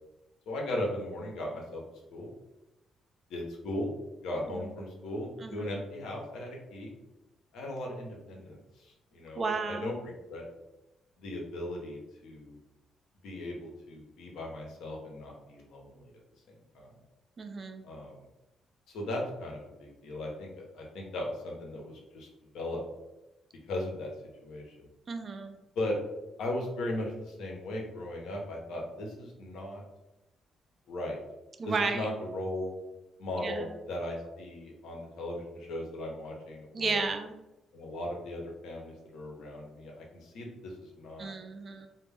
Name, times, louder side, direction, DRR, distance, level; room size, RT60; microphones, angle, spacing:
voice 1, 0.5-2.3 3.3-3.9 4.2-6.9 7.5-10.5 11.2-12.6 13.2-16.2 16.7-17.0 17.8-18.2 18.9-22.3 22.5-22.8 23.7-24.1 24.4-24.9 25.8-26.0 26.4-29.8 30.9-31.2 31.6-32.7 33.2-37.1 37.7-41.3, left 1 dB, 80° left, 0 dB, 0.6 m, -37 dB
voice 2, 9.4-9.9 17.4-17.8 25.1-25.6 31.6-32.1 33.4-33.7 36.7-37.3 41.2-41.9, right 4 dB, 40° right, 6 dB, 0.3 m, -33 dB
2.1 x 2.0 x 3.2 m, 0.96 s
cardioid pair, 90°, 0 cm